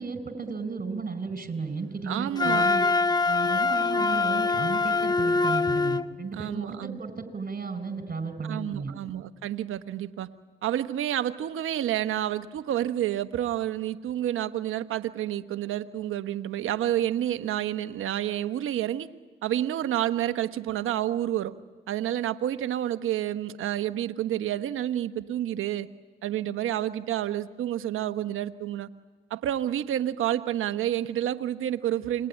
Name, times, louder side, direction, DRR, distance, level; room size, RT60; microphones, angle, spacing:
voice 1, 0.0-2.8 3.3-8.9, right 4 dB, 40° right, 10 dB, 5.2 m, -34 dB
voice 2, 2.1-2.7 6.3-7.0 8.4-10.3 10.6-19.1 19.4-21.5 21.9-25.9 26.2-28.9 29.3-32.3, right 12 dB, 75° right, 11 dB, 1.1 m, -29 dB
Wind instrument woodwind instrument, 2.4-6.1, left 3 dB, 20° left, 1.1 m, -24 dB
27.5 x 22.0 x 10.0 m, 1.4 s
supercardioid pair, 50°, 21 cm